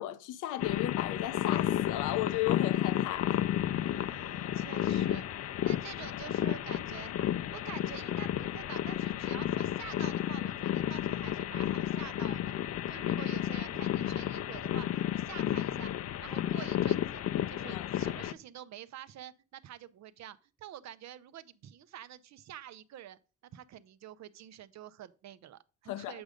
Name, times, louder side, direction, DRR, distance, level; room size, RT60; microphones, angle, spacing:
voice 1, 0.0-3.4 17.7-17.9 25.9-26.2, left 14 dB, 90° left, 0.7 m, -35 dB
sound 1, 0.6-18.3, left 11 dB, 55° left, 0.5 m, -32 dB
voice 2, 3.9-7.1 7.5-12.6 12.9-15.9 16.2-17.2 17.5-23.2 23.5-26.2, right 11 dB, 65° right, 0.6 m, -48 dB
7.9 x 5.1 x 5.0 m
cardioid pair, 90°, 30 cm